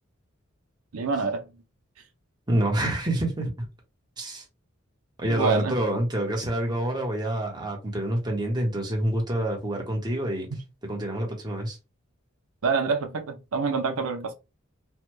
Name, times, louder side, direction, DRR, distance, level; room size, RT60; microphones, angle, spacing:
voice 1, 0.9-1.4 5.3-5.7 12.6-14.3, right 4 dB, 90° right, 0.6 m, -26 dB
voice 2, 2.5-3.5 4.2-4.4 5.2-10.5 10.9-11.8, right 1 dB, 20° right, 1.0 m, -27 dB
3.2 x 2.2 x 3.0 m
head